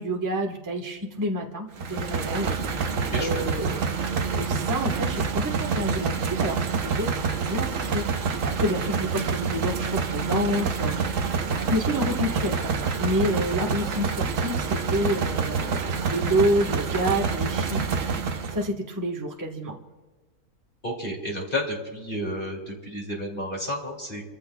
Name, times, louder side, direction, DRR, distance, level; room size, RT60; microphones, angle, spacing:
voice 1, 0.0-11.0 11.7-19.8, equal, 15° right, -1 dB, 1.3 m, -29 dB
sound 1, 1.8-18.7, right 5 dB, 60° right, 1.2 m, -27 dB
voice 2, 2.9-3.4 20.8-24.2, equal, 35° left, -2 dB, 2.8 m, -31 dB
30.0 x 14.5 x 2.3 m, 1.3 s
omnidirectional pair, 1.7 m